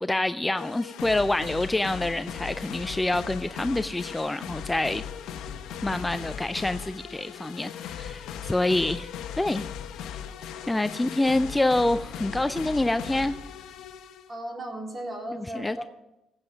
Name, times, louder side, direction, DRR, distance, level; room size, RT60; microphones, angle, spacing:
voice 1, 0.0-5.0 5.8-9.1 9.4-9.7 10.7-13.3 15.3-15.8, left 2 dB, 15° left, 0.4 m, -26 dB
sound 1, 0.6-14.3, left 8 dB, 90° left, 0.8 m, -38 dB
voice 2, 14.3-15.9, right 1 dB, 30° right, 3.4 m, -36 dB
15.0 x 8.1 x 5.2 m
cardioid pair, 90°, 0 cm